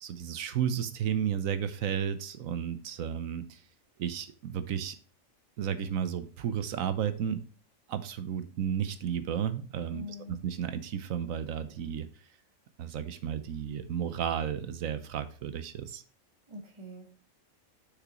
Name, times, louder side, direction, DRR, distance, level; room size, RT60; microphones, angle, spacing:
voice 1, 0.0-3.6 4.0-5.0 5.6-7.4 7.9-12.1 12.8-16.0, right 8 dB, 85° right, 12 dB, 1.2 m, -33 dB
voice 2, 9.9-10.4 16.5-17.1, left 2 dB, 20° right, 3 dB, 1.5 m, -43 dB
6.6 x 6.0 x 3.0 m, 0.42 s
omnidirectional pair, 1.4 m